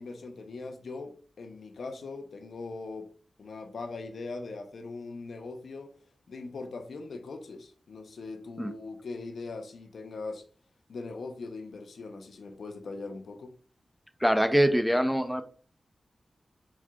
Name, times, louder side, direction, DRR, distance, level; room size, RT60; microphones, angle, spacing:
voice 1, 0.0-3.1 3.4-5.9 6.3-10.4 10.9-13.5, left 3 dB, 85° left, 0.7 m, -40 dB
voice 2, 14.2-15.4, equal, ahead, 0.4 m, -24 dB
4.7 x 4.3 x 2.3 m
wide cardioid pair, 145°, 0 cm